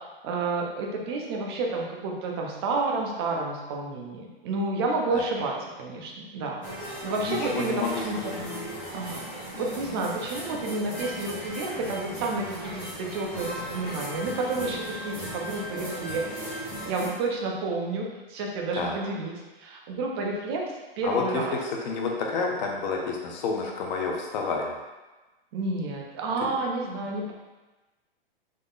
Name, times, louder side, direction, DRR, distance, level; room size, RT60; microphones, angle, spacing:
voice 1, 0.2-6.6 7.0-7.8 8.0-8.3 8.9-9.2 9.6-12.7 13.0-16.3 16.9-19.3 19.6-20.6 21.0-21.6 25.5-27.3, right 3 dB, 25° right, 0 dB, 0.4 m, -30 dB
sound 1, 6.6-17.1, equal, 5° left, 0.8 m, -37 dB
voice 2, 7.2-8.0 18.7-19.0 21.0-24.7 26.4-26.5, left 4 dB, 50° left, 1 dB, 0.7 m, -29 dB
3.7 x 2.1 x 3.7 m, 1.1 s
hypercardioid pair, 155°, 30 cm